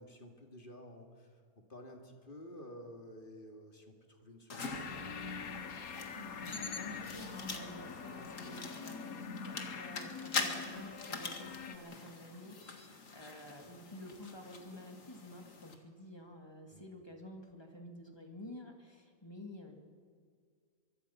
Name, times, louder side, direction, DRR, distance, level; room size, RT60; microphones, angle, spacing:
voice 1, 0.0-5.8 16.7-16.9, equal, 35° left, 3 dB, 2.5 m, -53 dB
sound 1, 4.5-15.7, left 4 dB, 60° left, 2.2 m, -44 dB
sound 2, 4.6-11.8, left 5 dB, 75° left, 1.7 m, -44 dB
voice 2, 6.1-19.8, left 1 dB, 15° left, 2 dB, 2.4 m, -51 dB
23.5 x 23.5 x 5.8 m, 2.1 s
omnidirectional pair, 1.5 m